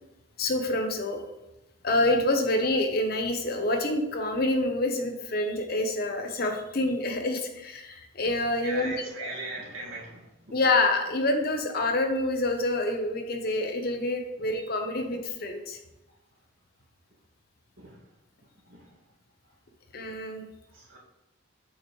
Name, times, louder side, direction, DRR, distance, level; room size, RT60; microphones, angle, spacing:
voice 1, 0.4-1.2 1.8-9.3 10.5-15.8 19.9-20.4, left 2 dB, 50° left, 4 dB, 0.8 m, -27 dB
voice 2, 8.6-10.3 14.4-14.5 17.8-18.0 18.7-18.8 20.7-21.0, right 3 dB, 85° right, -4 dB, 2.1 m, -38 dB
7.7 x 5.2 x 3.2 m, 0.92 s
head